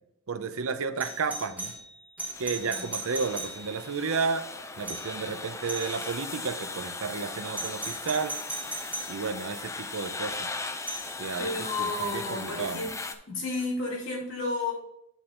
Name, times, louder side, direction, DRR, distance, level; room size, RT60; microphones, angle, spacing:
voice 1, 0.3-1.7 2.4-4.5 4.8-8.3 9.1-10.5 11.2-11.5 11.8-12.8, right 5 dB, 75° right, 10 dB, 0.6 m, -32 dB
Doorbell, 1.0-4.0 4.9-5.2 5.7-6.2 7.5-9.2 10.9-11.1 13.5-13.7, right 2 dB, 5° right, 1.0 m, -38 dB
sound 1, 2.3-13.1, left 3 dB, 15° left, 0.4 m, -38 dB
voice 2, 11.4-12.9 13.3-14.7, left 2 dB, 55° left, -3 dB, 2.5 m, -32 dB
9.0 x 4.3 x 3.7 m, 0.77 s
head